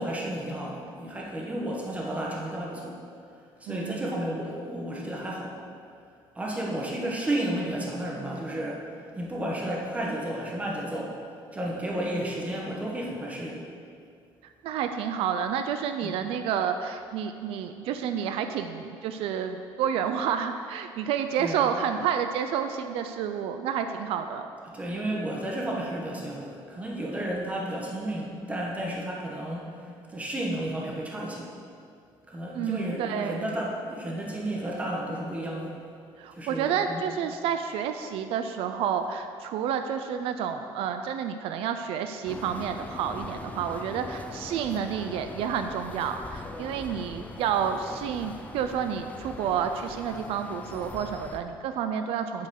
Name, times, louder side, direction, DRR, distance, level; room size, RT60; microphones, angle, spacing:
voice 1, 0.0-2.9 3.6-5.5 6.3-8.8 9.1-11.1 11.5-13.6 16.0-16.2 21.4-21.6 24.7-29.7 30.1-31.5 32.3-35.7 36.3-37.0 52.4-52.5, right 1 dB, 15° right, -2 dB, 1.5 m, -32 dB
voice 2, 3.7-4.2 14.6-24.5 32.5-33.5 36.2-52.5, right 8 dB, 80° right, 7 dB, 0.5 m, -30 dB
sound 1, 42.3-51.4, left 2 dB, 15° left, 0.6 m, -41 dB
8.9 x 5.4 x 6.5 m, 2.4 s
cardioid pair, 150°, 9 cm